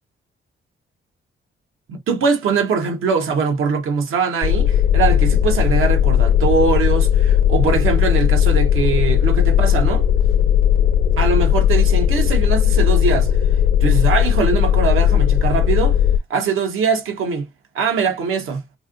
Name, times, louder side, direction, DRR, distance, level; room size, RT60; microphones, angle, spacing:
voice 1, 1.9-10.0 11.1-13.3 13.8-16.0 16.3-17.5 17.7-18.6, right 5 dB, 85° right, 1.2 m, -21 dB
sound 1, 4.4-16.2, left 10 dB, 45° left, 0.4 m, -16 dB
3.6 x 3.2 x 2.4 m
cardioid pair, 110°, 21 cm